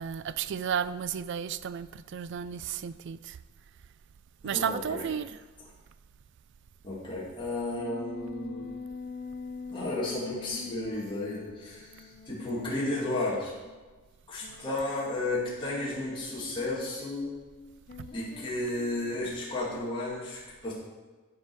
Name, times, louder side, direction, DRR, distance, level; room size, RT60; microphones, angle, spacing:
voice 1, 0.0-3.4 4.4-5.3, right 7 dB, 60° right, 0.3 m, -33 dB
voice 2, 4.4-5.1 6.8-8.7 9.7-13.5 14.3-17.3 18.1-20.7, left 2 dB, 25° left, 2.3 m, -33 dB
sound 1, 7.8-13.8 14.4-19.3, left 4 dB, 40° left, 0.6 m, -44 dB
11.5 x 4.9 x 4.6 m
head